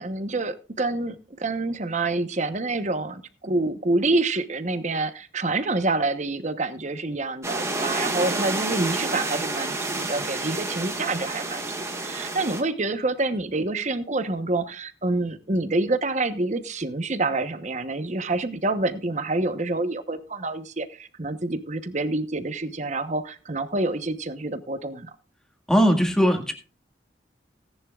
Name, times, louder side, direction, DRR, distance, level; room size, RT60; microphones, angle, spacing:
voice 1, 0.0-25.1, right 2 dB, 40° right, 11 dB, 1.0 m, -27 dB
sound 1, 7.4-12.6, right 2 dB, 15° right, 1.7 m, -29 dB
voice 2, 25.7-26.5, equal, 5° left, 4 dB, 1.9 m, -19 dB
17.5 x 10.5 x 2.4 m, 0.36 s
head